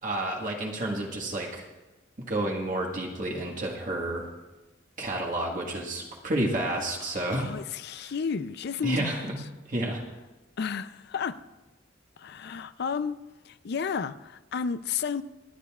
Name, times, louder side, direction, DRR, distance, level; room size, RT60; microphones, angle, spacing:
voice 1, 0.0-1.7 2.3-4.3 5.0-7.5 8.8-9.4 9.7-10.0, right 1 dB, 45° right, 1.5 m, -30 dB
voice 2, 7.0-9.3 10.6-11.4 12.2-13.2 13.4-15.2, left 6 dB, 60° left, 0.4 m, -32 dB
27.5 x 9.4 x 2.4 m
head